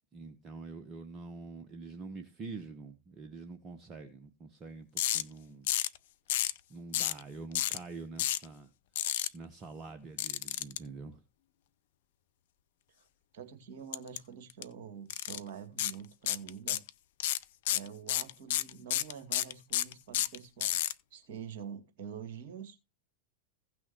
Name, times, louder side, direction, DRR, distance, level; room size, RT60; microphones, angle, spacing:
voice 1, 0.1-5.7 6.7-8.7 9.3-11.2, right 4 dB, 25° right, 1.2 m, -46 dB
sound 1, 5.0-5.2 5.7-6.0 6.3-6.6 6.9-7.2 7.5-7.8 8.2-8.4 9.0-9.3 10.2-10.8 13.9-14.2 14.5-14.6 15.1-15.4 15.8-15.9 16.3-16.9 17.2-20.9, left 13 dB, 55° left, 0.5 m, -30 dB
voice 2, 13.3-16.8 17.7-20.8 21.1-22.9, right 7 dB, 50° right, 2.3 m, -46 dB
16.5 x 6.2 x 3.1 m
figure-of-eight pair, 90°, 0 cm